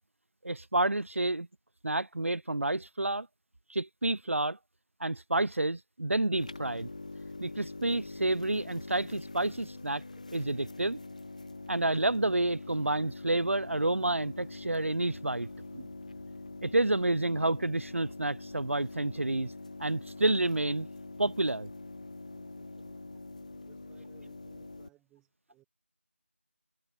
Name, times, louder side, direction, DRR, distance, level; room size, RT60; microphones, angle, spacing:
voice 1, 0.4-1.4 1.8-3.3 3.7-4.6 5.0-6.9 7.4-10.0 10.3-11.0 11.7-15.5 15.7-15.9 16.6-19.5 19.8-20.9 21.2-21.7, right 2 dB, 70° right, 1.2 m, -29 dB
sound 1, 6.4-24.9, left 2 dB, 30° left, 4.7 m, -44 dB
voice 2, 22.3-23.3 23.7-25.6, right 16 dB, 5° right, 7.2 m, -65 dB
figure-of-eight pair, 180°, 7 cm